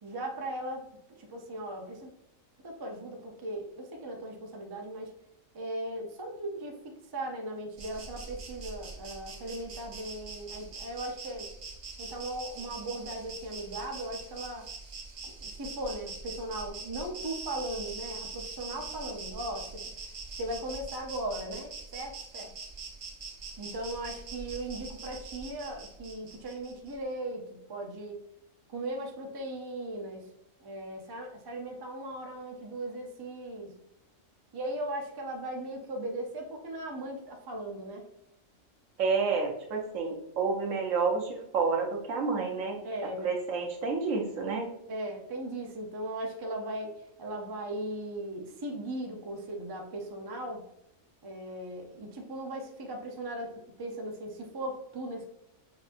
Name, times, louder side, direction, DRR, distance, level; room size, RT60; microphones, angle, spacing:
voice 1, 0.0-0.9 1.2-2.1 2.6-5.1 5.5-11.5 12.0-14.7 15.2-19.8 20.4-22.5 23.6-28.2 28.7-30.3 30.6-33.8 34.5-38.1 42.8-43.4 44.9-50.7 51.2-55.2, right 1 dB, 35° right, 2 dB, 0.4 m, -38 dB
Insect, 7.8-26.9, right 4 dB, 50° right, 1.0 m, -43 dB
voice 2, 39.0-42.8 43.2-44.7, right 4 dB, 80° right, 2 dB, 1.2 m, -29 dB
6.0 x 2.6 x 2.5 m, 0.80 s
omnidirectional pair, 1.3 m